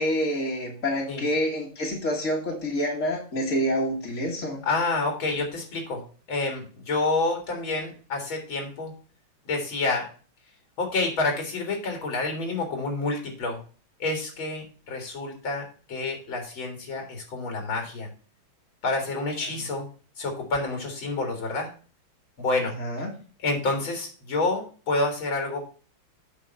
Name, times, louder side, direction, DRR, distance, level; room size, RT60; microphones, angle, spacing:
voice 1, 0.0-4.6 22.8-23.1, equal, 40° left, -2 dB, 1.7 m, -27 dB
voice 2, 4.6-6.0 6.3-8.9 9.5-10.1 10.8-13.6 14.0-18.1 18.8-19.9 20.2-21.7 22.4-22.7 23.4-25.6, left 3 dB, 70° left, 2 dB, 2.7 m, -28 dB
8.3 x 5.2 x 5.4 m, 0.39 s
omnidirectional pair, 2.3 m